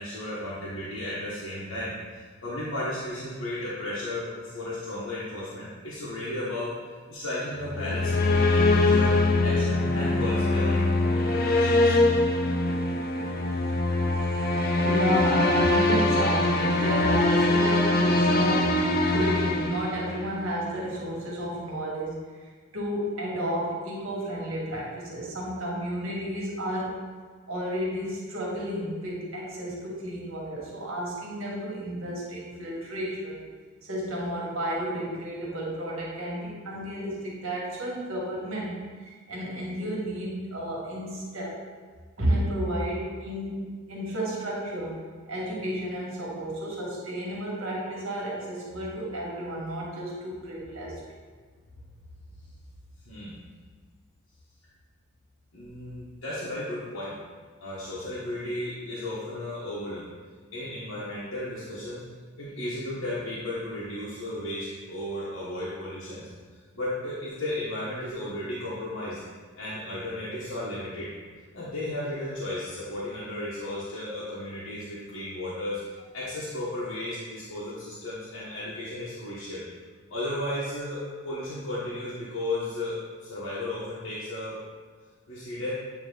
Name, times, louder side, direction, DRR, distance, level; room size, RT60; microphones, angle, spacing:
voice 1, 0.0-6.7 7.1-9.2 9.4-10.9 11.1-12.0 53.0-53.4 55.5-57.2 57.6-60.1 60.5-62.0 62.4-66.2 66.7-69.2 69.6-71.1 71.5-75.8 76.1-79.6 80.1-84.6 85.3-85.7, left 1 dB, 80° left, -9 dB, 1.3 m, -34 dB
sound 1, 7.6-20.5, left 2 dB, 45° left, 0.5 m, -23 dB
voice 2, 14.8-27.0 27.5-33.4 33.8-41.6 42.2-51.0, equal, 80° right, -4 dB, 1.8 m, -32 dB
8.9 x 3.1 x 3.9 m, 1.5 s
head